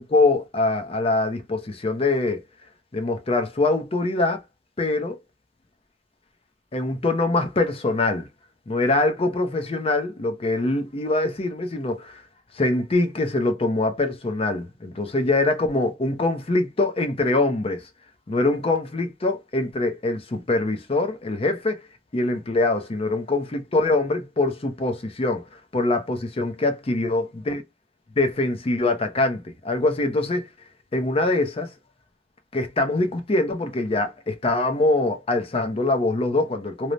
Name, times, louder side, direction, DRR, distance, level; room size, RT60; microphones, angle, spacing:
voice 1, 0.0-2.4 2.9-4.4 4.8-5.2 6.7-8.3 8.7-12.2 12.5-17.9 18.3-21.8 22.1-27.6 28.2-30.5 30.9-31.7 32.5-36.9, left 2 dB, 35° left, 0.5 m, -23 dB
3.0 x 2.1 x 2.5 m
head